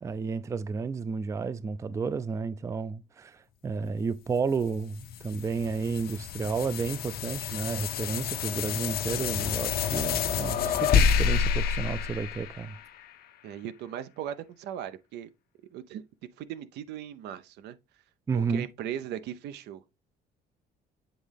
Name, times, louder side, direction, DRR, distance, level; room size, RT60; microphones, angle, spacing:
voice 1, 0.0-12.8 18.3-18.7, right 5 dB, 20° right, 0.3 m, -32 dB
sound 1, 4.5-13.1, left 7 dB, 65° left, 0.7 m, -29 dB
voice 2, 13.4-15.3 15.7-16.0 16.4-17.8 18.3-19.8, right 10 dB, 80° right, 0.6 m, -38 dB
7.7 x 3.6 x 3.4 m
cardioid pair, 110°, 17 cm